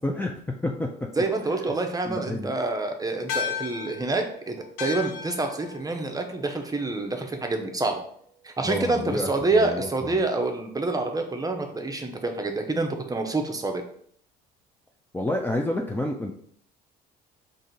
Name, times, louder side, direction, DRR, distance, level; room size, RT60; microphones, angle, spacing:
voice 1, 0.0-0.9 2.0-2.5 8.6-10.2 15.1-16.3, left 1 dB, 10° left, 1 dB, 0.5 m, -29 dB
voice 2, 1.2-8.0 8.4-13.8, right 3 dB, 15° right, 4 dB, 0.8 m, -27 dB
sound 1, 3.3-8.0, left 7 dB, 80° left, 0.6 m, -36 dB
3.7 x 2.6 x 4.1 m, 0.62 s
supercardioid pair, 70°, 21 cm